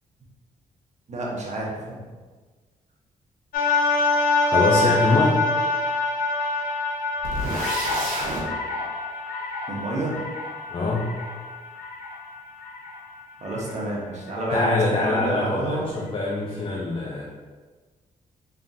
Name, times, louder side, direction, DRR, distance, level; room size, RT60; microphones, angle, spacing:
voice 1, 1.1-2.0 9.7-10.2 13.4-16.0, right 1 dB, 55° right, -4 dB, 1.1 m, -29 dB
sound 1, 3.5-13.7 14.3-14.4, left 2 dB, 85° left, 0.6 m, -26 dB
voice 2, 4.4-5.4 10.7-11.1 14.5-15.8 16.1-17.3, left 3 dB, 40° left, -2 dB, 0.6 m, -23 dB
sound 2, 7.2-8.4, right 1 dB, 80° right, 1.3 m, -29 dB
3.7 x 3.5 x 2.7 m, 1.4 s
cardioid pair, 75°, 14 cm